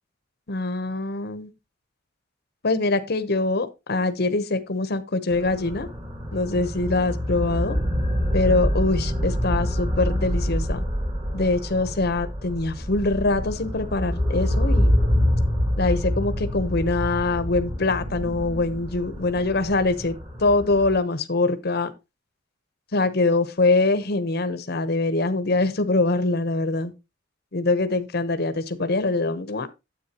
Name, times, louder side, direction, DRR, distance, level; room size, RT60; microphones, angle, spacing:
voice 1, 0.5-1.5 2.6-5.9 6.3-7.8 8.3-10.8 11.3-14.9 15.8-20.1 20.4-21.9 22.9-26.9 27.5-29.7, left 2 dB, 55° left, 0.9 m, -23 dB
sound 1, 5.3-20.9, equal, 30° right, 2.4 m, -26 dB
9.7 x 8.0 x 2.9 m
head